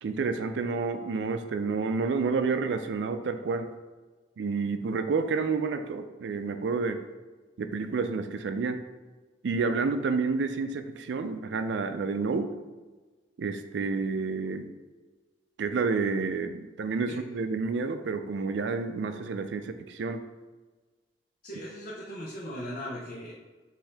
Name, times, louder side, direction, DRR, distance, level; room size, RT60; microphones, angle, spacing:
voice 1, 0.0-3.7 4.4-7.0 7.6-8.8 9.4-12.5 13.4-14.7 15.6-20.2, right 4 dB, 75° right, 9 dB, 0.4 m, -29 dB
voice 2, 21.4-23.4, equal, 50° left, -6 dB, 0.7 m, -38 dB
5.5 x 2.8 x 3.3 m, 1.3 s
head